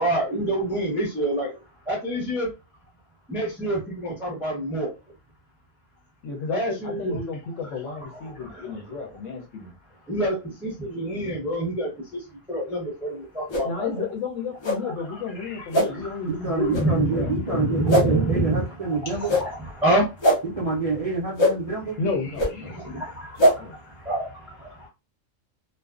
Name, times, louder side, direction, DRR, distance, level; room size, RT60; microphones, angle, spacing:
voice 1, 0.0-1.5 1.9-2.5 3.3-4.9 6.5-7.2 8.3-8.8 10.1-14.1 14.8-15.6 15.9-16.2 16.7-20.4 22.7-24.9, right 1 dB, ahead, 0.6 m, -28 dB
voice 2, 6.2-9.7 13.6-18.2 22.0-22.8 23.6-23.8, left 4 dB, 70° left, 0.9 m, -32 dB
sound 1, 13.5-13.7 14.6-14.8 15.7-15.9 16.7-16.8 17.9-18.1 19.3-19.4 20.2-20.4 21.4-21.5 22.4-22.5 23.4-23.5, equal, 50° left, 0.3 m, -19 dB
voice 3, 16.3-19.3 20.4-22.0, right 4 dB, 50° right, 0.4 m, -27 dB
2.4 x 2.2 x 2.4 m
omnidirectional pair, 1.4 m